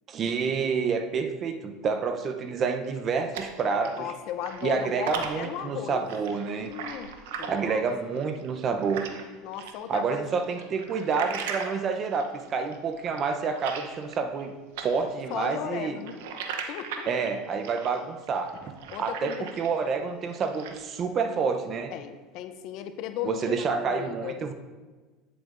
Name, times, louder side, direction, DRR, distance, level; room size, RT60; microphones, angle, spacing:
voice 1, 0.1-4.1 4.6-6.7 7.5-9.0 9.9-14.5 14.8-16.0 17.1-18.7 19.0-21.9 23.2-24.5, right 5 dB, 40° right, 7 dB, 0.7 m, -28 dB
sound 1, 2.8-4.1 4.4-9.3 9.6-14.5 14.7-19.9 20.2-20.9, right 6 dB, 80° right, 0.8 m, -39 dB
voice 2, 4.0-6.1 6.6-7.1 7.4-7.8 8.1-8.3 9.4-10.3 15.3-16.2 16.7-17.1 18.9-19.5 21.9-24.4, left 10 dB, 60° left, 9 dB, 0.6 m, -36 dB
9.1 x 7.8 x 2.6 m, 1.3 s
supercardioid pair, 105°, 0 cm